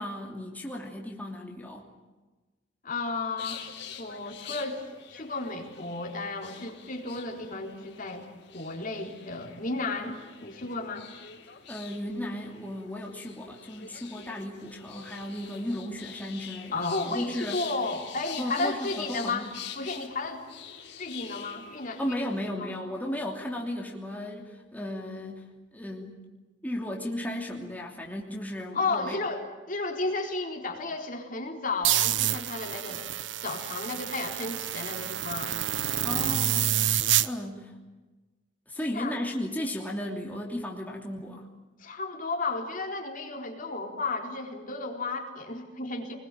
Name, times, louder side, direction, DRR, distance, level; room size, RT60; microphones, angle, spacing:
voice 1, 0.0-1.9 10.0-10.1 11.7-16.7 17.1-17.6 18.4-19.5 22.0-25.5 25.7-26.2 26.6-29.2 36.0-36.9 37.2-37.7 38.7-41.5, left 1 dB, 10° left, -1 dB, 3.0 m, -35 dB
voice 2, 2.8-3.7 4.0-8.2 8.5-11.1 16.7-19.5 19.8-20.4 21.0-22.2 22.6-22.8 28.7-33.0 33.4-35.6 38.8-39.2 41.8-46.2, left 3 dB, 45° left, 2 dB, 4.1 m, -33 dB
sound 1, 3.4-22.5, left 8 dB, 65° left, 3.5 m, -45 dB
sound 2, 31.8-37.3, right 11 dB, 75° right, 1.0 m, -28 dB
25.0 x 21.5 x 9.1 m, 1.2 s
head